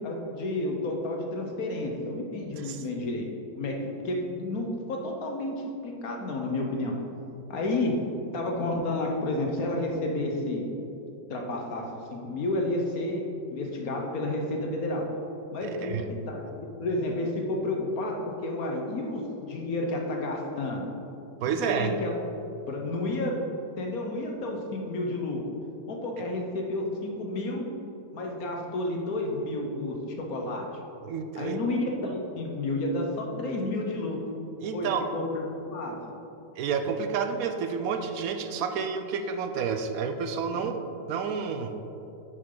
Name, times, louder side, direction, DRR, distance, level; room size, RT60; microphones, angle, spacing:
voice 1, 0.0-6.9 7.5-8.0 8.3-10.7 11.3-13.2 13.5-15.1 15.5-20.9 21.7-22.1 22.7-23.4 23.8-25.4 25.9-27.7 28.1-30.7 31.4-34.2 34.7-36.0 40.5-40.7, left 2 dB, 60° left, 1 dB, 1.3 m, -31 dB
voice 2, 15.6-16.1 21.4-21.9 31.0-31.6 34.6-35.0 36.6-40.8 41.1-41.8, right 6 dB, 70° right, 7 dB, 0.9 m, -30 dB
9.3 x 6.6 x 3.8 m, 2.9 s
omnidirectional pair, 1.8 m